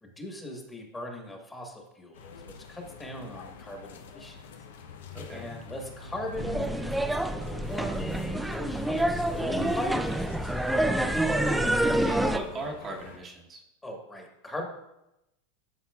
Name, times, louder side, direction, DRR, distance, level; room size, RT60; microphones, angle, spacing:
voice 1, 0.0-4.4 5.3-10.5 13.8-14.7, left 1 dB, 15° left, 2 dB, 1.4 m, -40 dB
sound 1, 2.1-13.2, left 5 dB, 85° left, 0.7 m, -46 dB
voice 2, 5.1-5.5 11.0-13.6, right 2 dB, 30° right, -1 dB, 1.0 m, -40 dB
sound 2, 6.4-12.4, right 1 dB, 5° right, 0.4 m, -27 dB
12.0 x 4.2 x 2.3 m, 0.87 s
supercardioid pair, 120°, 0 cm